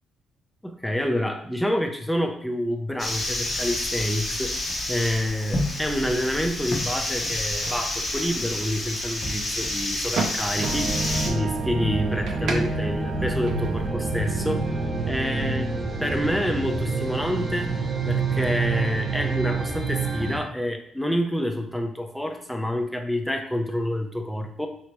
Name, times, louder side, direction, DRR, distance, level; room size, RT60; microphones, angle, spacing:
voice 1, 0.6-4.6 4.9-10.9 11.3-14.7 15.0-15.7 16.0-17.7 18.1-24.7, equal, 5° left, 4 dB, 0.5 m, -28 dB
sound 1, 3.0-11.3, left 1 dB, 35° left, 0.8 m, -29 dB
sound 2, 3.4-13.9, right 4 dB, 75° right, 0.6 m, -39 dB
sound 3, 10.6-20.4, right 3 dB, 35° right, 0.9 m, -27 dB
3.2 x 2.9 x 2.9 m, 0.67 s
cardioid pair, 90°, 0 cm